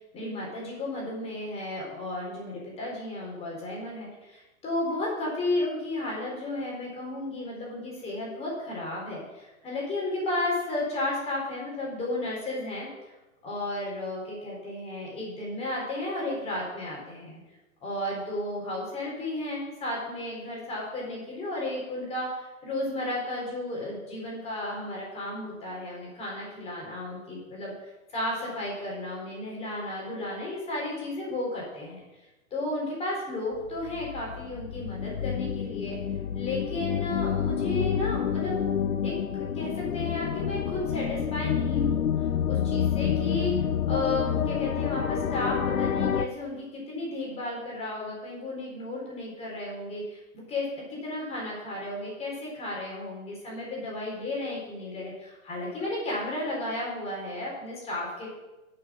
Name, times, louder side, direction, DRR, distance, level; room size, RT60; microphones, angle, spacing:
voice 1, 0.1-12.9 13.4-17.4 17.8-32.0 32.5-36.0 36.3-38.6 39.0-42.1 42.4-43.5 43.9-58.3, left 2 dB, 15° left, -3 dB, 3.9 m, -33 dB
sound 1, 33.7-46.3, left 8 dB, 80° left, 0.9 m, -28 dB
11.5 x 6.9 x 6.2 m, 1.1 s
hypercardioid pair, 150°, 42 cm